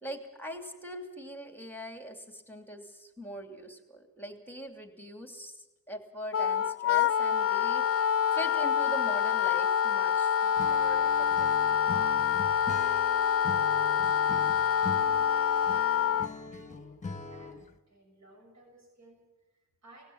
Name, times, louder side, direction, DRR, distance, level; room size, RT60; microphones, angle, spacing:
voice 1, 0.0-11.8, equal, 5° left, 6 dB, 2.8 m, -42 dB
Wind instrument woodwind instrument, 6.3-16.3, left 8 dB, 45° left, 0.6 m, -26 dB
Acoustic guitar / Strum, 10.6-17.8, left 4 dB, 20° left, 1.5 m, -42 dB
voice 2, 14.6-17.5 17.9-20.0, right 1 dB, 55° right, 1 dB, 6.8 m, -56 dB
19.0 x 16.0 x 8.8 m, 1.1 s
cardioid pair, 75°, 33 cm